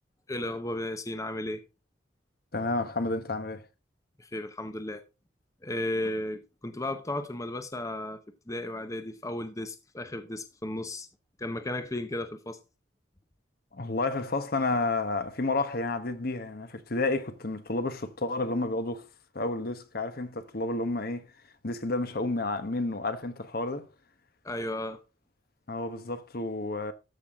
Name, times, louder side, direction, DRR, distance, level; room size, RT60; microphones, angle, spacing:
voice 1, 0.3-1.6 4.2-5.0 5.6-8.2 8.5-11.1 11.4-12.6 24.4-25.0, left 1 dB, 15° left, 0.8 m, -34 dB
voice 2, 2.5-3.6 13.7-19.1 19.3-21.3 21.6-23.9 25.7-26.9, left 2 dB, 55° left, 1.2 m, -30 dB
13.5 x 5.9 x 3.6 m
head